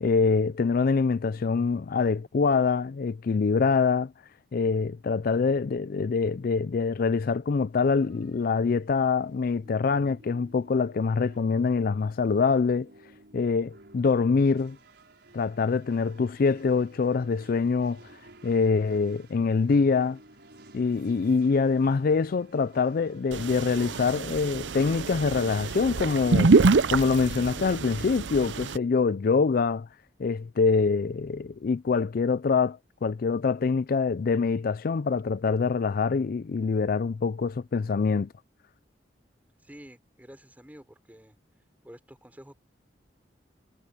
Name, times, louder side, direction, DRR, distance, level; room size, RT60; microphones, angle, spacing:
voice 1, 0.0-4.1 4.5-12.9 13.3-14.8 15.3-18.0 18.4-20.2 20.7-26.5 26.9-29.9 30.2-38.3, left 4 dB, 55° left, 0.4 m, -25 dB
sound 1, 7.8-25.8, right 2 dB, 70° right, 6.6 m, -54 dB
sound 2, 23.3-28.8, right 4 dB, 90° right, 0.6 m, -25 dB
voice 2, 39.6-41.3 41.8-42.5, equal, 10° right, 4.7 m, -49 dB
head